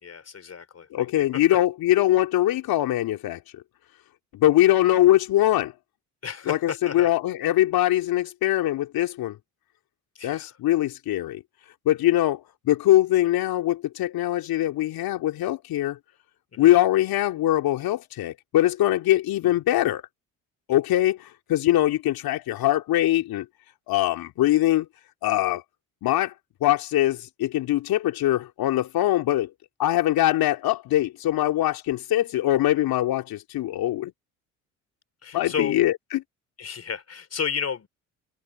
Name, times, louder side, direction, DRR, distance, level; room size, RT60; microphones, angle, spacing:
voice 1, 0.0-1.3 6.2-7.1 10.2-10.5 16.5-16.7 35.2-35.8 36.6-37.9, left 7 dB, 40° left, 4.0 m, -32 dB
voice 2, 0.9-3.6 4.3-5.7 6.5-9.4 10.2-11.4 11.8-16.0 16.6-20.0 20.7-23.5 23.9-24.9 25.2-25.6 26.0-26.3 26.6-29.5 29.8-34.1 35.3-36.2, left 14 dB, 60° left, 3.1 m, -22 dB
hypercardioid pair, 55°, 40 cm